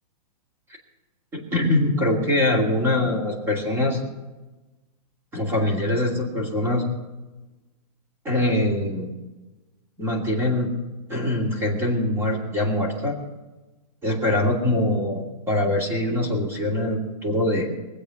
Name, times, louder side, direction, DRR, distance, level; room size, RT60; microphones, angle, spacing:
voice 1, 1.3-4.0 5.3-6.8 8.2-9.1 10.0-10.7 11.1-13.2 14.0-17.7, left 1 dB, 10° right, -1 dB, 2.7 m, -23 dB
23.0 x 8.0 x 6.1 m, 1.1 s
hypercardioid pair, 165°, 20 cm